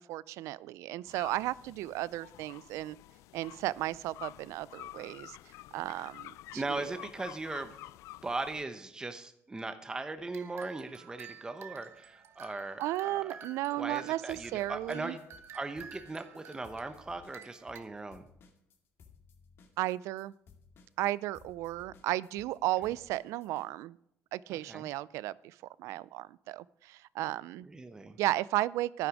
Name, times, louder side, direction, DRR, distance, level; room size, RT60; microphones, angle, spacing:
voice 1, 0.0-3.0 3.3-5.4 5.7-6.6 12.8-15.2 19.8-20.3 21.0-24.0 24.3-27.7 28.2-29.1, right 16 dB, 80° right, 21 dB, 0.4 m, -34 dB
sound 1, 1.1-8.6, left 15 dB, 80° left, 0.4 m, -50 dB
voice 2, 6.5-7.7 8.2-15.2 15.5-18.3 24.7-24.9 27.6-28.2, right 3 dB, 15° right, 8 dB, 0.9 m, -39 dB
sound 2, 10.2-17.8, right 7 dB, 55° right, 1.1 m, -51 dB
sound 3, 14.3-15.5 15.8-23.7, left 5 dB, 55° left, 2.2 m, -59 dB
11.5 x 10.0 x 4.8 m, 0.76 s
cardioid pair, 110°, 5 cm